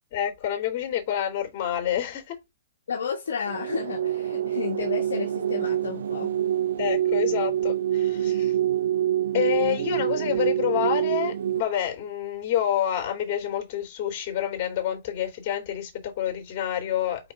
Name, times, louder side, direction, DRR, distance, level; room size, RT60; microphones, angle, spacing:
voice 1, 0.1-2.4 6.8-8.5 9.3-17.3, left 10 dB, 40° left, 3.5 m, -28 dB
voice 2, 2.9-6.3, left 6 dB, 70° left, 1.5 m, -32 dB
sound 1, 3.5-11.6, right 11 dB, 65° right, 0.6 m, -26 dB
5.4 x 5.0 x 3.6 m
figure-of-eight pair, 120°, 0 cm